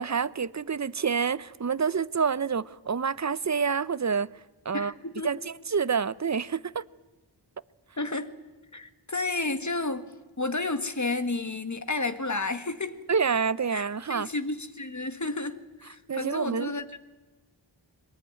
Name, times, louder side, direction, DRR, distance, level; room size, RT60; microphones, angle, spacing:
voice 1, 0.0-4.3 4.6-4.9 5.2-5.4 5.7-6.8 13.1-14.3 16.1-16.7, right 6 dB, 35° right, 0.7 m, -27 dB
voice 2, 4.7-5.3 8.0-8.3 8.7-10.1 10.4-13.0 13.7-17.0, left 2 dB, 40° left, 1.7 m, -31 dB
22.5 x 20.5 x 9.6 m
wide cardioid pair, 55°, 46 cm